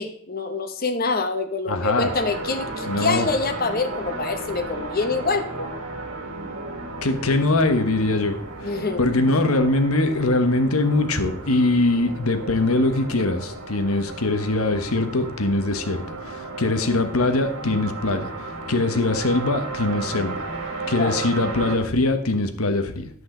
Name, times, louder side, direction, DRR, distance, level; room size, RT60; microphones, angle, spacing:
voice 1, 0.0-5.7 8.6-9.0 20.9-21.2, left 3 dB, 45° left, 8 dB, 1.0 m, -26 dB
voice 2, 1.7-2.1 2.9-3.3 7.0-8.4 8.6-20.4 20.9-23.1, left 2 dB, 90° left, 8 dB, 1.2 m, -22 dB
sound 1, 2.0-21.8, right 2 dB, 85° right, 2.4 m, -34 dB
11.0 x 8.0 x 3.9 m, 0.67 s
head